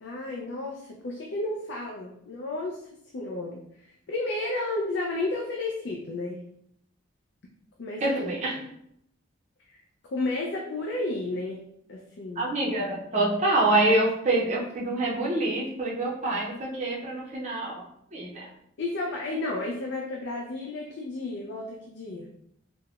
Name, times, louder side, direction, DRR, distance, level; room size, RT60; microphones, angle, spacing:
voice 1, 0.0-2.8 3.1-3.6 4.1-6.4 7.8-8.1 9.7-9.8 10.1-11.6 11.9-12.6 18.8-22.3, left 2 dB, 60° left, -1 dB, 0.4 m, -32 dB
voice 2, 8.0-8.5 12.4-17.8 18.1-18.5, right 2 dB, 35° right, -4 dB, 0.5 m, -26 dB
3.4 x 2.1 x 2.3 m, 0.73 s
head